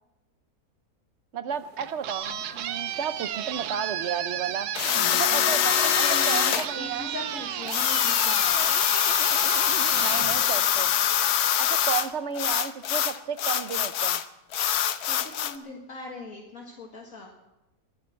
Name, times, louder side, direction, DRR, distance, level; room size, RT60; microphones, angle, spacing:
voice 1, 1.3-4.7 5.1-7.1 9.9-10.9 11.6-14.2, right 8 dB, 55° right, 12 dB, 1.0 m, -32 dB
sound 1, 1.5-11.2, right 11 dB, 85° right, 1.2 m, -34 dB
sound 2, 2.2-10.5, left 5 dB, 45° left, 3.3 m, -47 dB
sound 3, 4.7-6.7 7.7-12.1 12.3-14.2 14.5-15.6, left 10 dB, 80° left, 1.3 m, -24 dB
voice 2, 5.8-8.7 15.0-17.3, left 2 dB, 60° left, 0 dB, 2.1 m, -39 dB
22.5 x 7.8 x 7.4 m, 0.96 s
omnidirectional pair, 1.6 m